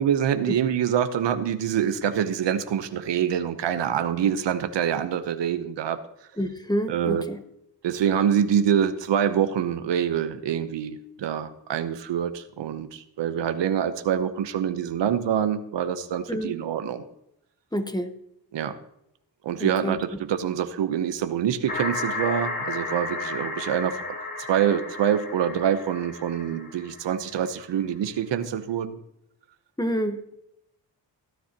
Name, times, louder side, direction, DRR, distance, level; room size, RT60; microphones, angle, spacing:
voice 1, 0.0-6.0 6.9-7.2 7.8-17.0 18.5-18.8 19.4-24.1 24.5-29.0, right 9 dB, 85° right, 10 dB, 0.9 m, -25 dB
voice 2, 6.4-7.4 16.3-16.6 17.7-18.1 19.6-20.0 29.8-30.2, equal, 10° left, 8 dB, 1.1 m, -28 dB
sound 1, 21.7-27.4, left 3 dB, 50° left, 3.0 m, -33 dB
16.5 x 9.5 x 2.9 m, 0.77 s
cardioid pair, 75°, 42 cm